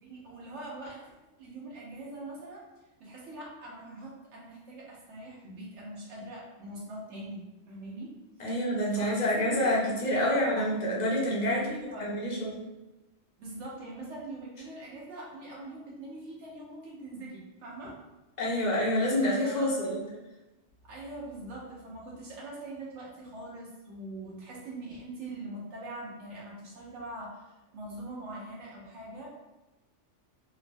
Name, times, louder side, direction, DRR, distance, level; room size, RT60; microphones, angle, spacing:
voice 1, 0.0-2.6 3.0-8.1 8.9-9.6 10.0-10.6 11.5-12.1 13.4-18.0 19.4-20.2 20.8-29.3, right 1 dB, 80° right, -4 dB, 1.1 m, -43 dB
voice 2, 8.4-12.6 18.4-20.0, left 1 dB, 45° left, -4 dB, 0.6 m, -27 dB
3.0 x 2.1 x 2.6 m, 1.1 s
omnidirectional pair, 1.2 m